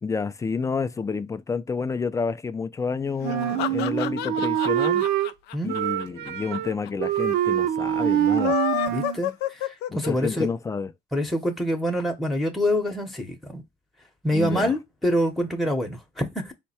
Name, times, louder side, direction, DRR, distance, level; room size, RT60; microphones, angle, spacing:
voice 1, 0.0-5.1 5.6-8.6 9.9-10.9 14.3-14.7, left 5 dB, 20° left, 0.4 m, -29 dB
sound 1, 3.2-6.6 6.9-7.0 7.2-7.3 8.2-10.4, left 12 dB, 85° left, 0.4 m, -29 dB
Wind instrument woodwind instrument, 3.2-5.3 5.7-6.7 7.0-9.2, right 11 dB, 85° right, 0.5 m, -25 dB
voice 2, 8.9-10.5 11.1-13.6 14.2-16.5, equal, ahead, 0.8 m, -26 dB
4.6 x 2.1 x 4.2 m
cardioid pair, 110°, 17 cm